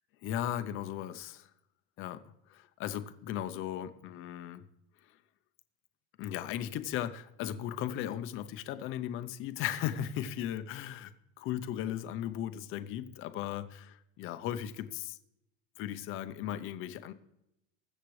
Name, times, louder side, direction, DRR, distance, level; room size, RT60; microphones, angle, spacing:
voice 1, 0.2-1.5 2.0-2.2 2.5-4.6 5.0-5.2 6.2-11.1 11.4-15.2 15.8-17.1, left 11 dB, 40° left, 11 dB, 0.7 m, -37 dB
21.5 x 7.4 x 3.2 m, 0.84 s
cardioid pair, 175°, 34 cm